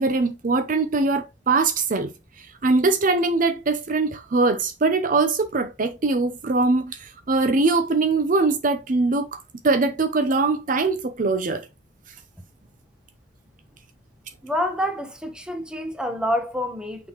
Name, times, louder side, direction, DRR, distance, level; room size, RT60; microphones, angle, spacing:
voice 1, 0.0-2.1 2.6-9.3 9.6-11.6, right 3 dB, 50° right, 0.6 m, -22 dB
voice 2, 14.4-17.1, equal, 5° right, 1.2 m, -27 dB
6.3 x 5.6 x 3.0 m
head